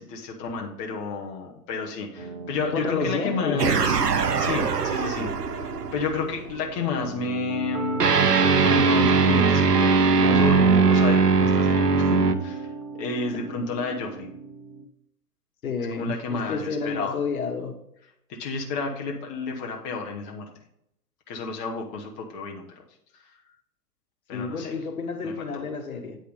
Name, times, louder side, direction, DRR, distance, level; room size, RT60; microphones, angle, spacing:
voice 1, 0.0-4.0 4.4-8.0 8.5-9.9 10.2-12.1 12.4-12.7 13.0-14.3 16.0-17.2 18.4-20.5 21.3-22.7 24.3-24.7 25.2-25.6, left 4 dB, 25° left, 0 dB, 1.1 m, -31 dB
sound 1, 2.2-14.8, right 5 dB, 25° right, 0.4 m, -35 dB
voice 2, 2.7-3.7 15.6-17.8 24.3-26.2, left 5 dB, 60° left, 5 dB, 1.6 m, -30 dB
sound 2, 3.6-6.4 8.0-12.3, right 4 dB, 80° right, 0.9 m, -20 dB
9.0 x 5.0 x 5.1 m, 0.77 s
figure-of-eight pair, 120°, 47 cm